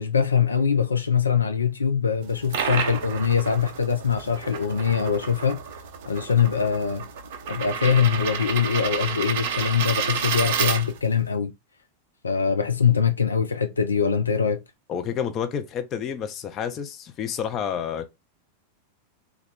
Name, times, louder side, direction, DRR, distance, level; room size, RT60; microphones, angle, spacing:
voice 1, 0.0-5.6 6.1-7.1 7.5-11.5 12.2-14.6, left 7 dB, 75° left, 0.4 m, -23 dB
sound 1, 2.2-11.2, right 7 dB, 55° right, 0.5 m, -30 dB
voice 2, 14.9-18.1, left 8 dB, 30° left, 0.6 m, -29 dB
3.1 x 2.4 x 3.5 m
figure-of-eight pair, 90°, 0 cm